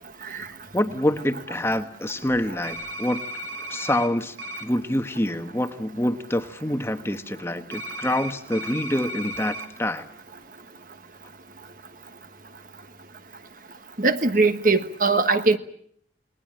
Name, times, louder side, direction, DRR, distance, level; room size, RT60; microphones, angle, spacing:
voice 1, 0.7-3.2 3.7-4.3 4.6-10.1, left 1 dB, 15° left, 1.2 m, -26 dB
sound 1, 2.6-4.1 4.4-4.6 7.7-9.7, right 1 dB, 85° right, 3.0 m, -35 dB
voice 2, 14.0-15.6, right 3 dB, 45° right, 1.4 m, -20 dB
29.0 x 21.0 x 8.9 m
head